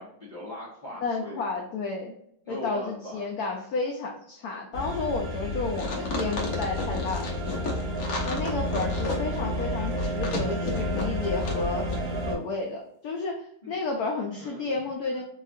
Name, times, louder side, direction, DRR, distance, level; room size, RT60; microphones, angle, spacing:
voice 1, 0.0-1.4 2.4-3.3 5.5-6.1 13.6-13.7 14.3-14.6, left 1 dB, 30° left, -7 dB, 0.9 m, -40 dB
voice 2, 1.0-2.1 2.5-7.4 8.2-11.9 12.3-15.2, left 3 dB, 70° left, 0 dB, 0.9 m, -31 dB
sound 1, 4.7-12.3, left 1 dB, 70° right, 2.1 m, -31 dB
sound 2, 5.7-11.6 11.9-12.0, left 2 dB, 50° left, 1.2 m, -33 dB
4.7 x 2.4 x 2.6 m, 0.72 s
omnidirectional pair, 2.3 m